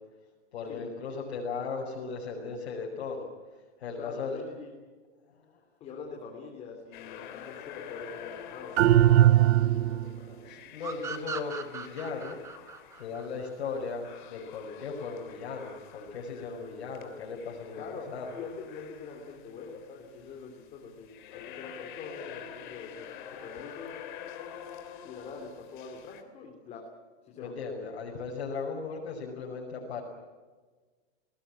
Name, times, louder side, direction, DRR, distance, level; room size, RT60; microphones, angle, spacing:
voice 1, 0.5-3.3 3.8-4.4 5.4-5.6 9.8-12.4 13.0-18.3 27.3-30.0, left 5 dB, 65° left, -1 dB, 5.8 m, -37 dB
voice 2, 4.0-4.7 5.8-10.4 17.8-23.1 23.4-23.9 25.0-26.9 27.3-27.8, left 4 dB, 20° left, 1 dB, 3.3 m, -44 dB
sound 1, 6.9-26.2, left 9 dB, 45° left, 3.3 m, -47 dB
sound 2, 8.8-10.2, right 13 dB, 75° right, 0.7 m, -20 dB
sound 3, 10.8-14.2, right 5 dB, 10° right, 1.0 m, -39 dB
27.5 x 19.0 x 8.7 m, 1.4 s
hypercardioid pair, 165°, 34 cm